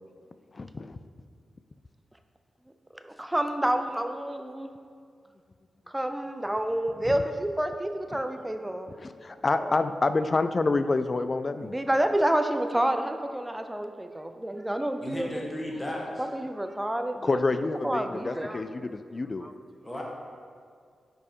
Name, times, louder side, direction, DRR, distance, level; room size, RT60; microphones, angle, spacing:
voice 1, 0.5-1.0 7.0-7.2 8.1-8.2 8.9-11.8 17.2-19.5, left 3 dB, 40° left, 11 dB, 0.3 m, -28 dB
voice 2, 3.0-4.7 5.9-8.9 9.6-9.7 11.6-15.4 16.3-17.4 17.8-18.6 19.4-19.5, right 1 dB, 10° right, 7 dB, 0.5 m, -29 dB
voice 3, 15.0-16.3 19.8-20.0, left 1 dB, 20° left, -2 dB, 1.4 m, -35 dB
5.3 x 4.7 x 4.4 m, 2.2 s
cardioid pair, 50°, 0 cm